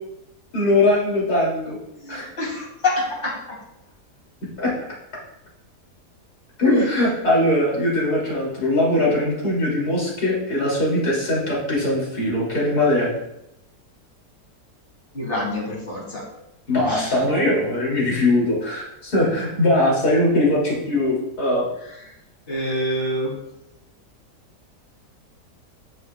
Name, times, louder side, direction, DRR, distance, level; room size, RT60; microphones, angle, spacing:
voice 1, 0.5-1.8 2.1-2.3 4.6-4.7 6.6-13.1 16.7-21.6, left 1 dB, 65° left, -4 dB, 3.2 m, -21 dB
voice 2, 2.0-3.6 6.6-7.0 15.1-16.2 16.8-17.1 22.0-22.1 22.5-23.4, left 1 dB, 30° left, -4 dB, 2.7 m, -26 dB
12.0 x 7.0 x 2.3 m, 0.84 s
omnidirectional pair, 1.8 m